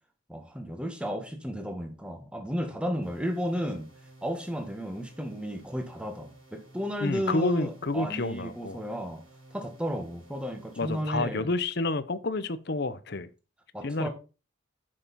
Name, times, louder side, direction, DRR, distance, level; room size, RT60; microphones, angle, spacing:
voice 1, 0.3-3.9 4.2-9.2 9.5-11.5 13.7-14.1, equal, 5° right, 1.5 m, -33 dB
sound 1, 3.0-11.0, right 2 dB, 75° right, 6.2 m, -54 dB
voice 2, 7.0-8.8 10.8-13.3 13.8-14.1, left 2 dB, 50° left, 0.8 m, -29 dB
9.0 x 6.7 x 4.2 m
head